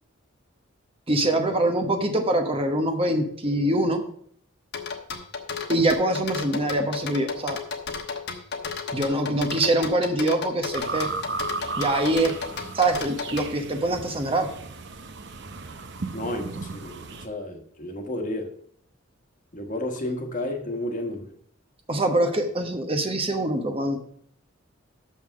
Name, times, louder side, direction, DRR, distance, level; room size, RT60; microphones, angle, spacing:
voice 1, 1.1-4.0 5.7-7.6 8.9-11.1 11.8-12.3 12.7-14.5 21.9-24.0, right 1 dB, 30° right, 1.0 m, -24 dB
sound 1, 4.7-13.5, left 5 dB, 60° left, 1.1 m, -33 dB
sound 2, 10.7-17.3, right 4 dB, 60° right, 0.8 m, -35 dB
voice 2, 16.1-18.5 19.5-21.3, left 1 dB, 40° left, 1.3 m, -32 dB
6.6 x 5.7 x 7.2 m
head